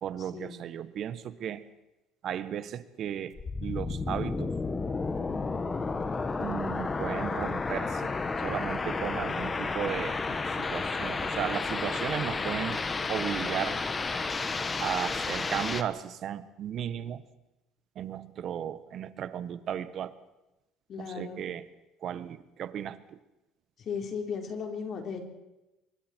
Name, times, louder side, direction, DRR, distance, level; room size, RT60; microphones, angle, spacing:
voice 1, 0.0-1.6 2.2-4.5 6.4-12.8 13.1-13.8 14.8-17.2 17.9-20.1 21.0-21.6 22.0-23.2, right 9 dB, 55° right, 13 dB, 1.4 m, -35 dB
sound 1, 3.4-15.8, left 4 dB, 25° left, 1.6 m, -32 dB
voice 2, 20.9-21.4 23.8-25.2, left 6 dB, 50° left, 3 dB, 4.3 m, -36 dB
25.0 x 23.0 x 4.6 m, 0.98 s
supercardioid pair, 105°, 0 cm